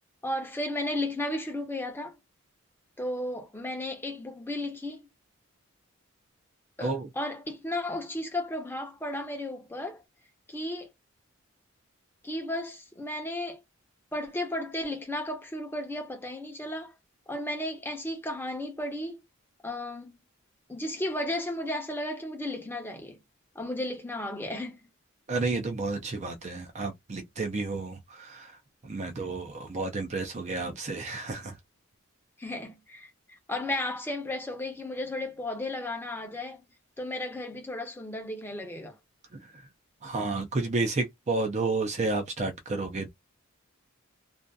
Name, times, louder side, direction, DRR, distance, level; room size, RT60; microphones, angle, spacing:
voice 1, 0.2-2.2 3.0-5.1 6.8-10.0 10.5-10.9 12.2-13.6 14.1-16.9 17.3-19.2 19.6-20.2 20.7-23.2 23.5-24.8 32.4-33.1 33.5-36.6 37.0-39.0, left 1 dB, 10° left, 0.8 m, -34 dB
voice 2, 6.8-7.1 25.3-28.6 28.8-31.6 39.3-39.6 40.0-43.1, right 3 dB, 35° right, 0.5 m, -31 dB
2.5 x 2.4 x 2.2 m
head